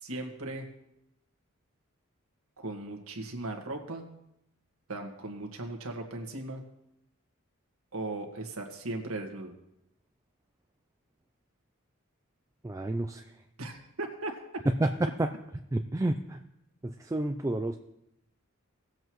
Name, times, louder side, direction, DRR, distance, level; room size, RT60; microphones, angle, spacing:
voice 1, 0.0-0.7 2.6-4.1 4.9-6.6 7.9-9.5 13.6-14.4, right 2 dB, 80° right, 3 dB, 1.7 m, -37 dB
voice 2, 12.6-13.2 14.8-14.9 15.7-16.4 16.8-17.8, right 1 dB, 15° right, 6 dB, 0.4 m, -30 dB
19.0 x 7.8 x 3.1 m, 0.84 s
head